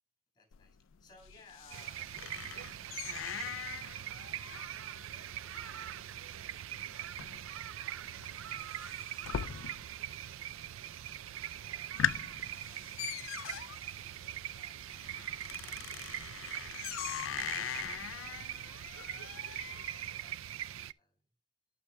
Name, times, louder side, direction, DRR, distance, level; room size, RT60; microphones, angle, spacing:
voice 1, 0.3-2.2 8.1-8.2 10.0-13.7 13.9-15.0 15.4-17.3 18.1-18.6 19.7-21.2, left 2 dB, 20° left, 2 dB, 7.2 m, -64 dB
sound 1, 0.5-10.1 10.3-10.9 11.3-11.4 11.8-20.1, left 10 dB, 80° left, 0.4 m, -41 dB
sound 2, 1.7-20.9, right 11 dB, 85° right, 0.4 m, -42 dB
voice 2, 8.1-8.7 18.6-19.1 20.0-20.8, equal, 20° right, 0 dB, 4.9 m, -72 dB
20.0 x 6.7 x 2.2 m, 0.28 s
head